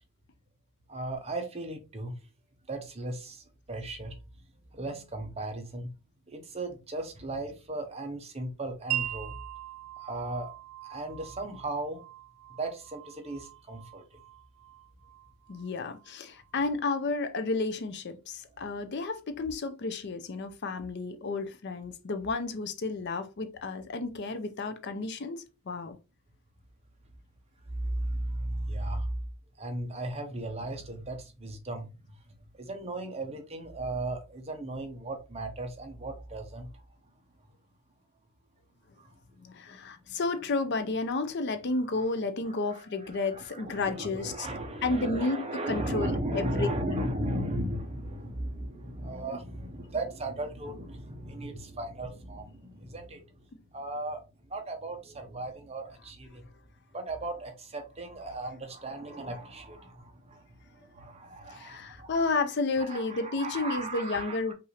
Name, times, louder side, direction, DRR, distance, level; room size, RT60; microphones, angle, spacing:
voice 1, 0.9-2.2 2.7-4.2 4.7-5.9 6.3-9.4 10.0-10.5 10.8-12.0 12.5-14.2 27.7-29.2 29.6-31.9 32.6-36.8 39.0-39.2 42.7-53.5 53.7-56.5 56.9-62.3 62.8-64.5, right 1 dB, 30° right, 0.9 m, -36 dB
Wind chime, 8.9-16.5, right 14 dB, 85° right, 0.3 m, -41 dB
voice 2, 15.5-26.0 39.4-44.5 44.8-46.7 61.5-64.5, left 3 dB, 50° left, 0.5 m, -32 dB
sound 1, 45.1-52.8, left 1 dB, 75° left, 1.4 m, -56 dB
5.5 x 2.6 x 3.2 m
head